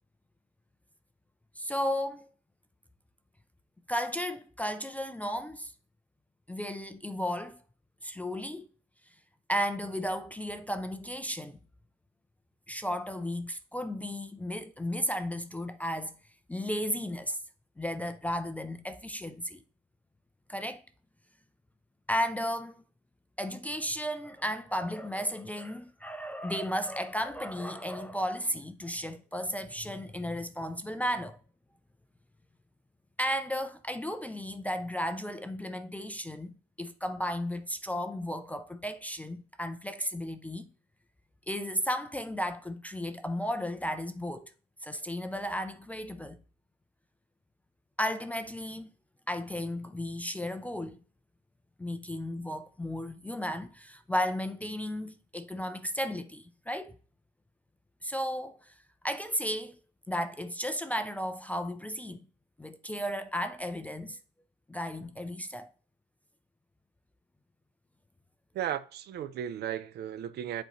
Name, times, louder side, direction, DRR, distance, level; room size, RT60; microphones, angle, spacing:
voice 1, 1.6-2.3 3.9-5.7 6.5-7.6 8.0-8.7 9.5-11.6 12.7-16.2 16.5-17.4 17.8-19.6 20.5-20.8 22.1-22.7 23.4-31.4 33.2-40.7 41.5-44.5 44.8-46.4 48.0-48.9 49.3-51.0 51.8-56.9 58.0-58.7 59.0-59.8 60.1-62.2 62.6-64.2 64.7-65.7, equal, 10° left, 0.3 m, -34 dB
voice 2, 68.5-70.6, right 10 dB, 60° right, 0.5 m, -35 dB
7.9 x 4.2 x 3.0 m
cardioid pair, 150°, 20 cm